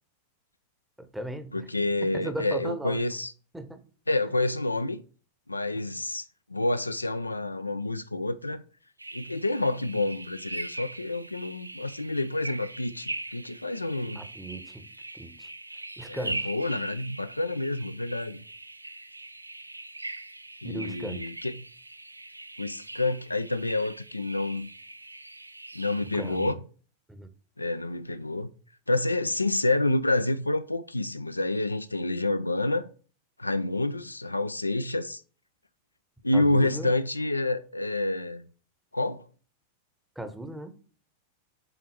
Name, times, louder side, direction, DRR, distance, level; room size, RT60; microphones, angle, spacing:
voice 1, 1.0-1.6 2.0-3.0 3.5-3.8 14.1-14.9 15.1-15.5 16.0-16.5 20.6-21.2 26.1-26.5 27.1-27.3 36.3-36.9 40.2-40.7, right 1 dB, 5° right, 1.0 m, -37 dB
voice 2, 1.5-3.3 4.1-5.0 5.5-6.2 6.5-8.6 9.1-14.2 16.1-18.4 20.6-21.6 22.6-24.7 25.7-26.6 27.6-28.5 28.9-32.9 33.4-35.2 36.2-38.5 38.9-39.2, left 2 dB, 85° left, 0.4 m, -28 dB
sound 1, 9.0-26.5, right 2 dB, 85° right, 0.3 m, -41 dB
7.9 x 4.1 x 4.3 m
figure-of-eight pair, 90°, 0 cm